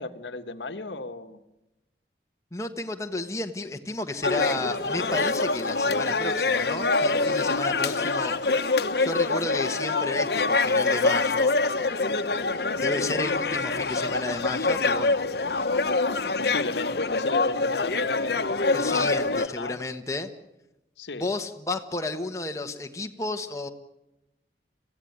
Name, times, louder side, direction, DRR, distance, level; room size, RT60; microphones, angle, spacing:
voice 1, 0.0-1.4 12.3-12.7 16.4-19.8 21.0-21.3, left 2 dB, 80° left, 9 dB, 1.3 m, -34 dB
voice 2, 2.5-8.7 9.0-11.5 12.8-15.2 18.7-20.3 21.1-23.7, left 2 dB, 15° left, 4 dB, 1.3 m, -32 dB
sound 1, 4.2-19.5, left 3 dB, 65° left, 1.2 m, -25 dB
26.5 x 15.5 x 9.4 m, 0.96 s
head